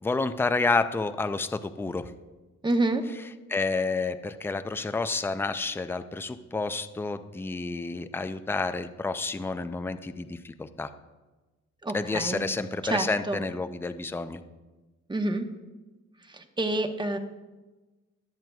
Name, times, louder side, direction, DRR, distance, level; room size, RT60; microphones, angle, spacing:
voice 1, 0.0-2.1 3.5-10.9 11.9-14.4, left 3 dB, 10° left, 10 dB, 0.5 m, -29 dB
voice 2, 2.6-3.0 11.8-12.4 12.8-13.4 15.1-15.5 16.3-17.2, right 2 dB, 15° right, 6 dB, 1.0 m, -28 dB
21.5 x 7.5 x 2.3 m, 1.2 s
cardioid pair, 90°, 30 cm